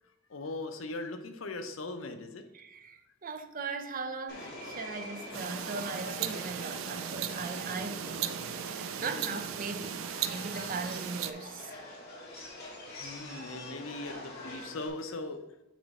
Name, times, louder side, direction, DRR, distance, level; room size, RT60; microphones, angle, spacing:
voice 1, 0.3-2.4 9.0-9.4 13.0-15.4, left 2 dB, 80° left, 6 dB, 0.7 m, -39 dB
voice 2, 2.5-11.8, right 4 dB, 45° right, 8 dB, 0.6 m, -39 dB
Subway metro underground, 4.3-14.9, left 1 dB, 55° left, 1.8 m, -44 dB
sound 1, 5.3-11.3, right 10 dB, 85° right, 0.4 m, -37 dB
7.2 x 3.0 x 5.3 m, 0.92 s
head